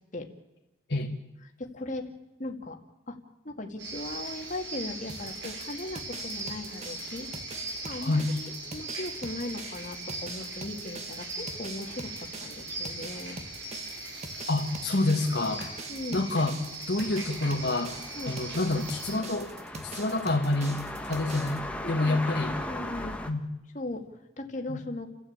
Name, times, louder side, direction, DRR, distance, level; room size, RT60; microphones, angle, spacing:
voice 1, 1.6-2.1 2.4-2.8 3.1-3.2 3.4-7.3 7.8-12.1 12.4-13.4 15.9-16.3 18.2-18.4 21.8-23.2 23.7-25.1, left 2 dB, 40° left, 3 dB, 2.1 m, -38 dB
sound 1, 3.8-19.2, right 2 dB, 90° right, 6.3 m, -40 dB
sound 2, 5.1-21.6, right 3 dB, 35° right, 1.9 m, -44 dB
voice 2, 14.5-15.7 16.1-16.6 16.9-18.0 18.3-21.6 21.9-22.5 23.3-23.4 24.7-24.8, left 2 dB, 65° left, 2 dB, 1.9 m, -28 dB
sound 3, 17.0-23.3, left 1 dB, 5° left, 1.5 m, -39 dB
30.0 x 13.5 x 8.8 m, 1.1 s
head